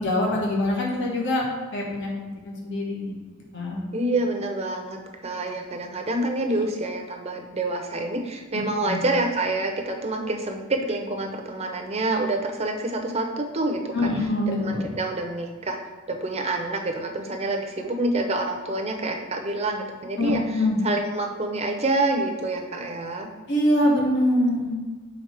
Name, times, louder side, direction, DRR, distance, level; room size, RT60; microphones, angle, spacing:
voice 1, 0.0-1.4 1.7-2.1 2.4-3.1 3.5-3.8 6.5-6.6 8.5-9.0 13.9-14.9 20.2-20.8 23.5-24.8, left 1 dB, 55° left, -2 dB, 1.3 m, -24 dB
voice 2, 3.9-14.1 14.6-15.8 16.1-20.4 20.8-23.3, right 2 dB, 30° right, 3 dB, 0.7 m, -27 dB
7.2 x 3.8 x 4.9 m, 1.3 s
head